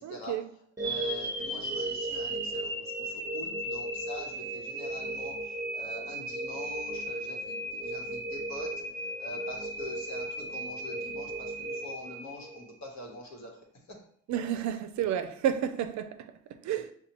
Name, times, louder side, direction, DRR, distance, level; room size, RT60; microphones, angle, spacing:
voice 1, 0.0-0.5 14.3-16.9, right 9 dB, 65° right, 0.5 m, -31 dB
voice 2, 0.8-2.7 3.3-5.3 5.7-8.7 9.2-11.3 11.6-13.5, left 1 dB, 65° left, 1.1 m, -44 dB
sound 1, 0.8-12.9, right 1 dB, 10° right, 0.9 m, -35 dB
5.6 x 2.3 x 2.9 m
cardioid pair, 90°, 30 cm